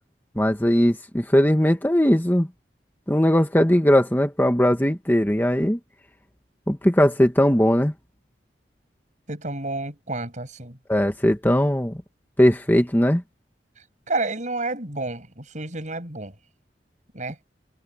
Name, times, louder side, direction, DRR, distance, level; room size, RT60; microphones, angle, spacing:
voice 1, 0.4-2.5 3.1-5.8 6.7-7.9 10.9-12.0 12.4-13.2, equal, 10° left, 1.7 m, -19 dB
voice 2, 9.3-10.8 14.1-16.3 17.1-17.4, right 2 dB, 45° right, 6.7 m, -30 dB
head